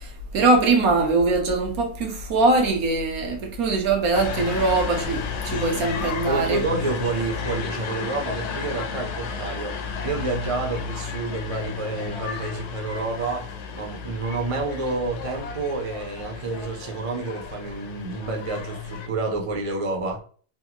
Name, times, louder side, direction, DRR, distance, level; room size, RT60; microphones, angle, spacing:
voice 1, 0.0-6.6, right 3 dB, 70° right, 1.3 m, -22 dB
sound 1, 4.1-19.1, left 6 dB, 65° left, 0.7 m, -33 dB
voice 2, 6.0-13.5 13.7-20.2, right 3 dB, 55° right, 0.3 m, -29 dB
3.6 x 2.4 x 2.8 m
omnidirectional pair, 1.6 m